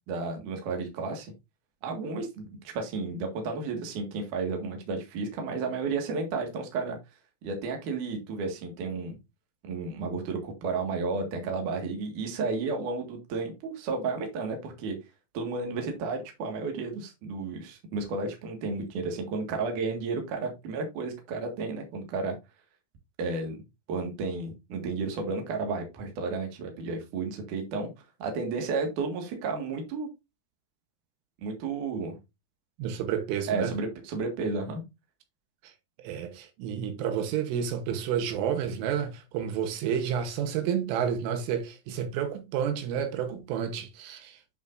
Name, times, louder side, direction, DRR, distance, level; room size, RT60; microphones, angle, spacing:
voice 1, 0.1-1.3 1.8-7.0 7.4-9.2 9.6-15.0 15.3-22.4 23.2-23.6 23.9-27.9 28.2-30.1 31.4-32.2 33.5-34.8, right 4 dB, 55° right, 2.6 m, -32 dB
voice 2, 32.8-33.7 36.0-44.4, right 8 dB, 80° right, 3.6 m, -30 dB
9.6 x 5.5 x 2.6 m
omnidirectional pair, 5.7 m